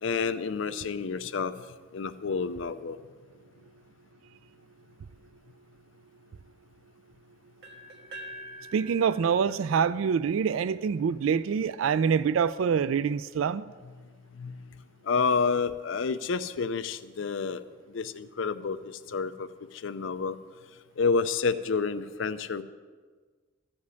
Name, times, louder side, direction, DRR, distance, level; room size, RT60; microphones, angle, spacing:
voice 1, 0.0-1.5 1.9-3.0 14.4-14.5 15.0-17.6 17.9-20.4 21.0-22.6, left 5 dB, 65° left, 0.5 m, -29 dB
sound 1, 7.6-11.5, right 1 dB, 55° right, 1.7 m, -47 dB
voice 2, 8.7-13.6, right 6 dB, 75° right, 0.3 m, -25 dB
14.0 x 5.3 x 9.5 m
head